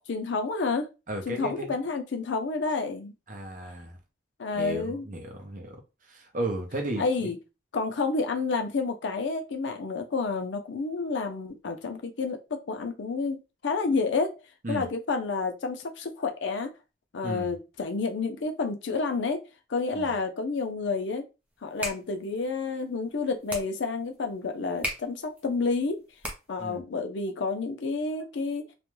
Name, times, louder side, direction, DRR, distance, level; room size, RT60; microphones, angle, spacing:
voice 1, 0.1-0.9 1.3-3.1 4.4-5.1 7.0-7.4 7.7-14.3 14.7-16.7 17.1-19.4 19.7-21.2 21.6-26.0 26.5-28.7, left 4 dB, 90° left, 0.5 m, -29 dB
voice 2, 1.1-1.7 3.3-4.0 4.6-7.3 14.6-14.9 17.2-17.5 19.9-20.1 26.6-26.8, right 1 dB, 45° right, 0.6 m, -34 dB
sound 1, 21.5-26.8, equal, 10° right, 0.5 m, -39 dB
2.4 x 2.2 x 3.1 m
head